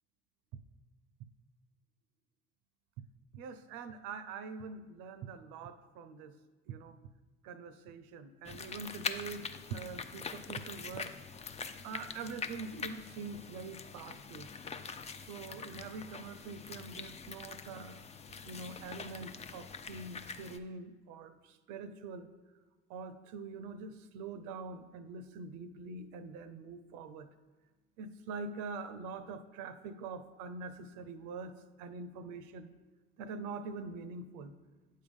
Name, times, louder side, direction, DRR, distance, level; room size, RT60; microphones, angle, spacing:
voice 1, 3.3-6.4 6.7-7.0 7.4-11.1 11.8-14.5 15.3-18.0 18.4-22.3 22.9-27.3 28.0-32.7 33.2-34.5, right 4 dB, 65° right, 11 dB, 0.6 m, -44 dB
sound 1, 8.4-20.6, left 5 dB, 20° left, 0.4 m, -44 dB
7.5 x 3.7 x 5.2 m, 1.2 s
hypercardioid pair, 60°, 33 cm